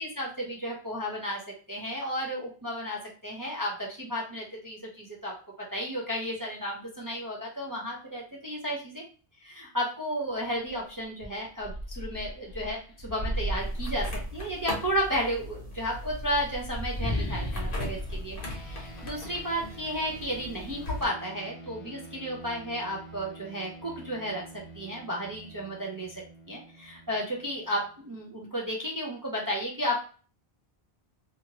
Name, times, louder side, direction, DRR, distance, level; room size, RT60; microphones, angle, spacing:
voice 1, 0.0-1.4 1.7-5.3 5.7-9.0 9.4-24.4 24.7-26.2 26.5-30.0, equal, 25° right, -3 dB, 0.5 m, -33 dB
sound 1, 10.6-10.8 11.2-14.8 15.8-19.4, equal, 45° left, 0.4 m, -34 dB
sound 2, 13.6-21.1, left 2 dB, 60° left, 1.1 m, -40 dB
sound 3, 18.5-28.2, right 2 dB, 85° left, 1.1 m, -48 dB
2.7 x 2.5 x 2.8 m, 0.39 s
omnidirectional pair, 1.0 m